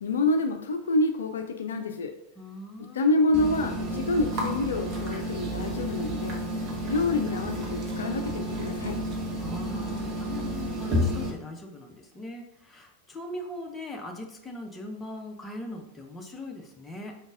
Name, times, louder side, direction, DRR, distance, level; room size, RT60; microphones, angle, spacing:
voice 1, 0.0-2.1 2.8-6.4 6.8-9.0, left 2 dB, 65° left, 6 dB, 0.3 m, -27 dB
voice 2, 2.4-3.1 9.4-17.2, left 1 dB, 15° left, 2 dB, 0.7 m, -40 dB
sound 1, 3.3-11.3, equal, 35° right, 1.0 m, -31 dB
4.8 x 3.9 x 2.4 m, 0.76 s
figure-of-eight pair, 90°, 0 cm